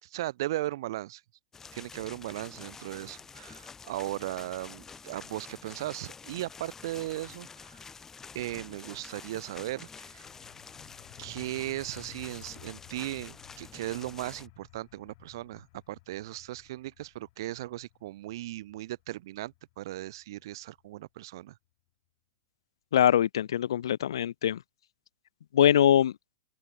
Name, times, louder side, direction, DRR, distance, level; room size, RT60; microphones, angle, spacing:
voice 1, 0.0-1.2 1.7-7.9 8.3-10.3 11.2-21.6, right 16 dB, 65° right, 1.2 m, -37 dB
sound 1, 1.5-14.5, left 5 dB, 15° left, 2.0 m, -48 dB
sound 2, 9.9-21.4, left 23 dB, 55° left, 3.5 m, -56 dB
voice 2, 22.9-24.6 25.5-26.1, left 10 dB, 75° left, 0.5 m, -23 dB
open air
hypercardioid pair, 110°, 3 cm